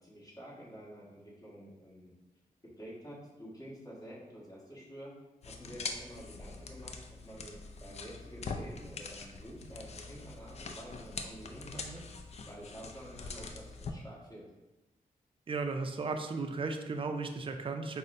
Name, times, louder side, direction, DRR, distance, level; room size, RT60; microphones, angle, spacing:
voice 1, 0.0-2.1 2.8-5.1 5.4-7.0 7.2-12.1 12.5-14.5, right 1 dB, 25° left, -7 dB, 1.4 m, -49 dB
sound 1, 5.4-13.9, left 4 dB, 45° left, 0.4 m, -43 dB
voice 2, 15.5-18.0, right 4 dB, 35° right, 5 dB, 0.4 m, -35 dB
5.2 x 2.1 x 2.5 m, 1.1 s
cardioid pair, 65°, 15 cm